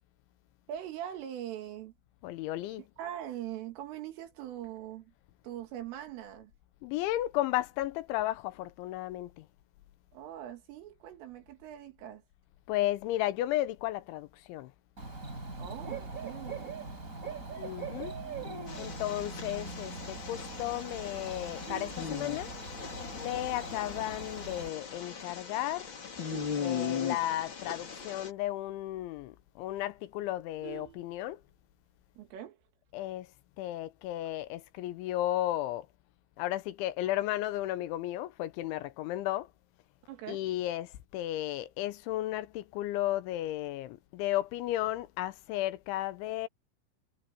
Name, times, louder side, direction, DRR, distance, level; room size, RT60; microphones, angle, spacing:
voice 1, 0.7-1.9 3.0-5.1 5.4-6.5 10.1-12.2 15.6-16.9 32.2-32.6 40.1-40.4, right 11 dB, 90° right, 5.1 m, -42 dB
voice 2, 2.2-2.8 6.8-9.5 12.7-14.7 17.5-18.2 18.8-22.5 23.2-25.9 26.6-31.4 32.9-33.3 33.6-35.9 36.4-39.5 40.3-46.5, left 14 dB, 80° left, 3.2 m, -34 dB
Bird / Cricket, 15.0-24.7, right 3 dB, 15° right, 4.8 m, -42 dB
sound 1, 18.7-28.3, left 6 dB, 35° left, 2.0 m, -39 dB
Vehicle horn car horn honking, 21.6-22.9 23.3-23.6 23.9-24.0 24.4-24.5 24.8-25.2 25.7-27.6 27.9-28.0 28.3-28.4 28.8-28.9 29.3-29.4 29.6-31.7 32.9-33.3, right 18 dB, 65° right, 4.0 m, -50 dB
omnidirectional pair, 5.6 m